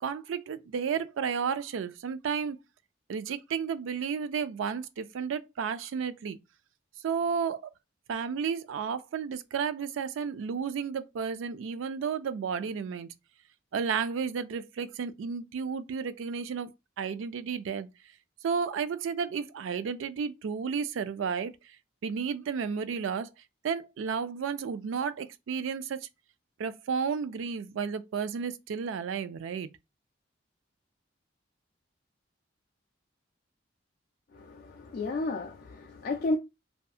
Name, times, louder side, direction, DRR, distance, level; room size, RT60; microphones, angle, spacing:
voice 1, 0.0-2.6 3.1-6.4 7.0-7.7 8.1-13.1 13.7-16.7 17.0-17.9 18.4-21.8 22.0-23.3 23.6-26.1 26.6-29.7, right 6 dB, 90° right, 0.3 m, -32 dB
voice 2, 34.3-36.4, left 2 dB, 50° left, 0.3 m, -32 dB
2.7 x 2.3 x 2.3 m
head